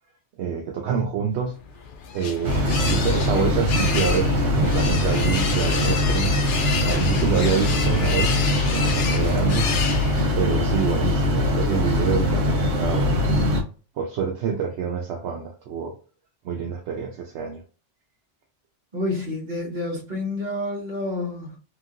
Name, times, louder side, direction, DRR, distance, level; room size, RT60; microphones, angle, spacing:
voice 1, 0.4-1.6 2.1-6.3 6.8-9.7 10.4-13.3 14.0-15.9 16.4-17.6, right 7 dB, 70° right, 0.8 m, -27 dB
sound 1, 1.6-10.5, left 5 dB, 60° left, 0.6 m, -30 dB
sound 2, 2.4-13.6, left 1 dB, 90° right, 1.1 m, -22 dB
voice 2, 18.9-21.6, left 2 dB, 40° right, 1.1 m, -29 dB
2.9 x 2.7 x 2.4 m
omnidirectional pair, 1.2 m